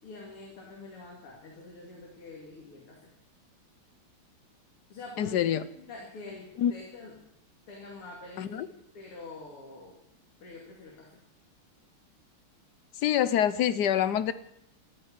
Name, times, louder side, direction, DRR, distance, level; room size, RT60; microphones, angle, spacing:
voice 1, 0.0-3.1 4.9-5.4 5.8-7.2 7.7-8.6 8.9-10.0 10.4-11.2, left 3 dB, 85° left, -1 dB, 3.5 m, -45 dB
voice 2, 5.2-5.6 6.6-6.7 8.4-8.7 13.0-14.3, left 10 dB, 65° left, 14 dB, 1.1 m, -26 dB
14.5 x 8.8 x 9.8 m, 0.77 s
omnidirectional pair, 2.4 m